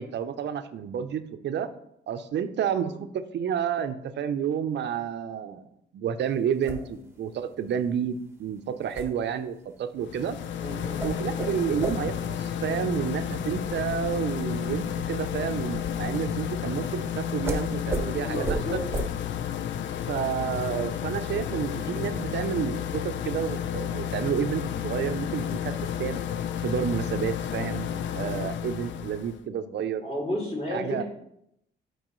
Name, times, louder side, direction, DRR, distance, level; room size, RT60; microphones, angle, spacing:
voice 1, 0.0-1.7 2.1-5.6 5.9-10.4 11.0-18.8 20.1-26.2 26.6-30.0 30.7-31.0, right 8 dB, 65° right, 9 dB, 0.7 m, -30 dB
sound 1, 6.2-16.3 17.4-17.6 17.9-18.0 18.4-18.6 18.9-19.1, right 2 dB, 10° right, 1.2 m, -36 dB
sound 2, 10.0-29.4, left 9 dB, 70° left, 0.5 m, -31 dB
voice 2, 10.6-11.0 11.6-11.8 18.2-18.8 30.0-31.0, left 1 dB, 30° left, -3 dB, 3.0 m, -32 dB
11.5 x 4.7 x 3.1 m, 0.77 s
cardioid pair, 90°, 20 cm